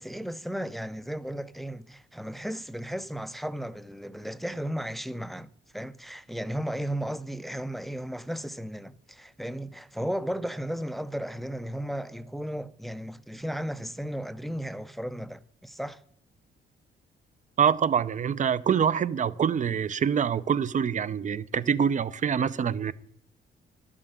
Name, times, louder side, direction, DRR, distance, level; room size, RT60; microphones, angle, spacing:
voice 1, 0.0-16.0, equal, ahead, 0.5 m, -35 dB
voice 2, 17.6-22.9, right 7 dB, 40° right, 0.6 m, -25 dB
11.5 x 7.4 x 8.0 m
cardioid pair, 90°, 20 cm